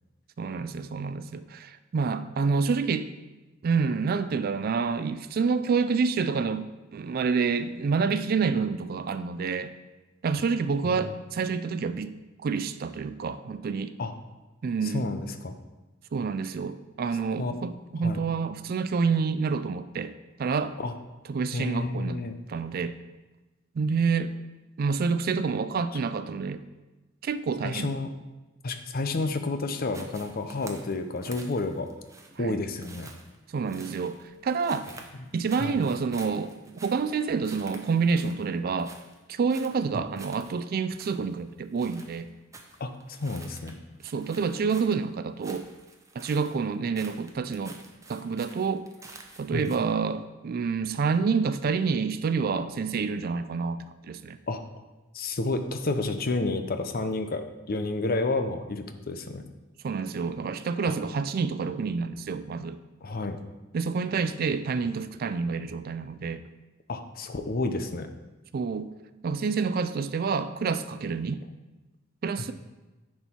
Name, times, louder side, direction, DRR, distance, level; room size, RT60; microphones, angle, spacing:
voice 1, 0.4-3.1 3.6-9.7 10.2-14.0 14.6-15.1 16.1-20.1 20.4-20.8 21.3-22.2 22.5-22.9 23.8-24.3 24.8-26.6 27.2-27.9 32.4-32.6 33.5-34.9 35.3-36.5 36.8-38.9 39.3-42.3 44.0-45.7 46.2-47.8 48.1-48.9 49.4-54.4 59.8-62.8 63.7-66.4 68.5-68.9 69.2-71.4 72.2-72.5, right 5 dB, 50° right, 12 dB, 0.4 m, -28 dB
voice 2, 14.9-15.6 17.4-17.5 18.0-18.2 20.8-20.9 21.5-22.4 27.6-28.1 28.6-31.9 32.4-33.1 35.5-35.8 39.9-40.0 42.8-43.8 49.5-49.7 54.5-54.6 55.1-59.4 60.8-61.0 63.0-63.4 66.9-68.1, left 2 dB, 50° left, 7 dB, 0.6 m, -30 dB
sound 1, 29.9-49.8, right 3 dB, 15° right, 0.7 m, -49 dB
10.0 x 4.4 x 4.4 m, 1.1 s
head